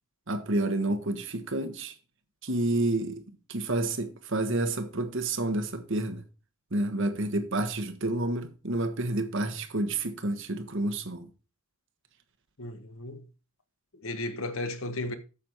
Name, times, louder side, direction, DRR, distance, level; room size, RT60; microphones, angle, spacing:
voice 1, 0.3-1.9 2.4-6.2 6.7-11.3, right 2 dB, 60° right, 1.4 m, -29 dB
voice 2, 12.6-13.3 14.0-15.2, left 2 dB, 65° left, 1.2 m, -34 dB
8.8 x 7.2 x 4.6 m
head